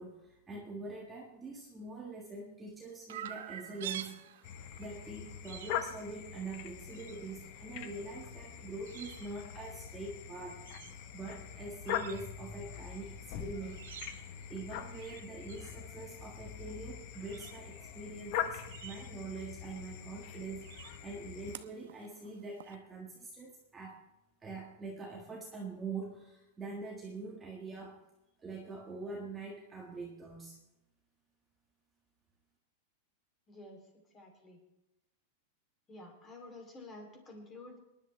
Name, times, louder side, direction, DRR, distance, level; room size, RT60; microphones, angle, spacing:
voice 1, 0.0-4.5 4.8-10.6 11.1-24.0 24.4-28.0 28.4-30.6, right 3 dB, 10° right, -2 dB, 1.6 m, -44 dB
Chirp tweet, 3.1-22.7, right 11 dB, 75° right, 0.9 m, -51 dB
sound 1, 4.4-21.6, left 10 dB, 40° left, 1.0 m, -43 dB
voice 2, 33.5-33.8 34.1-34.6 35.9-37.8, left 2 dB, 15° left, 2 dB, 3.1 m, -50 dB
25.5 x 11.0 x 3.3 m, 0.94 s
supercardioid pair, 165°, 0 cm